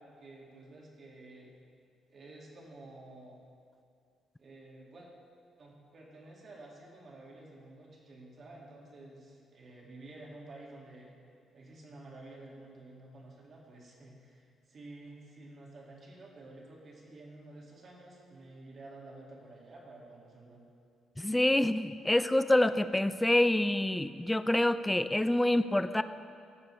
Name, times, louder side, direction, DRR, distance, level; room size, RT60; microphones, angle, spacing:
voice 1, 0.0-1.6 2.1-3.4 4.4-5.1 5.6-11.1 11.5-20.6, right 2 dB, 50° right, -2 dB, 1.9 m, -51 dB
voice 2, 21.2-26.0, left 1 dB, 10° left, 12 dB, 0.3 m, -27 dB
14.5 x 6.7 x 3.2 m, 2.4 s
cardioid pair, 90°, 0 cm